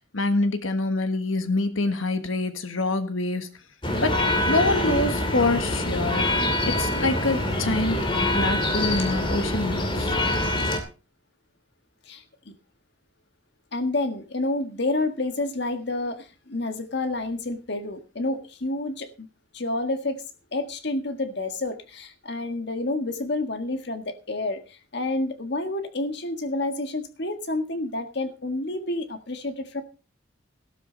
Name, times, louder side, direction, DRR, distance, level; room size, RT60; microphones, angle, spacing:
voice 1, 0.1-3.5 4.0-4.2 4.4-10.2, left 2 dB, 85° left, 9 dB, 1.5 m, -26 dB
sound 1, 3.8-10.8, left 1 dB, 25° left, 2.5 m, -25 dB
voice 2, 12.1-12.5 13.7-19.3 19.5-20.2 20.5-29.8, left 2 dB, 55° left, 8 dB, 1.7 m, -29 dB
13.5 x 13.0 x 4.0 m, 0.33 s
head